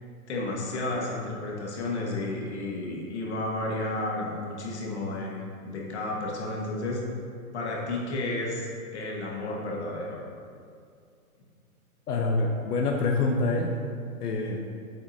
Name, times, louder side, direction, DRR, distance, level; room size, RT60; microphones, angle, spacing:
voice 1, 0.3-7.0 7.5-10.2, left 2 dB, 50° left, -2 dB, 1.5 m, -32 dB
voice 2, 12.1-13.7 14.2-14.7, left 3 dB, 85° left, 1 dB, 0.9 m, -26 dB
7.9 x 7.8 x 2.8 m, 2.3 s
hypercardioid pair, 180°, 45 cm